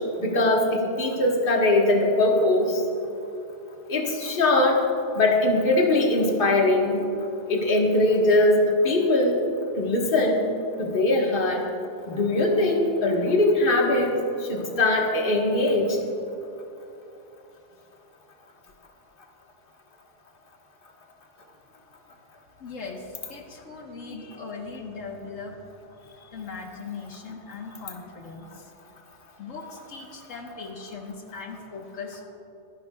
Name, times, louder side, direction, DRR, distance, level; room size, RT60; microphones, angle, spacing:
voice 1, 0.2-2.8 3.9-4.8 5.1-7.0 7.5-9.4 9.8-10.4 10.8-11.6 12.1-16.0, left 2 dB, 45° left, 0 dB, 1.6 m, -21 dB
voice 2, 22.6-25.6 26.0-28.7 29.4-32.2, left 4 dB, 90° left, 1 dB, 1.6 m, -39 dB
25.0 x 11.0 x 2.3 m, 2.9 s
omnidirectional pair, 1.3 m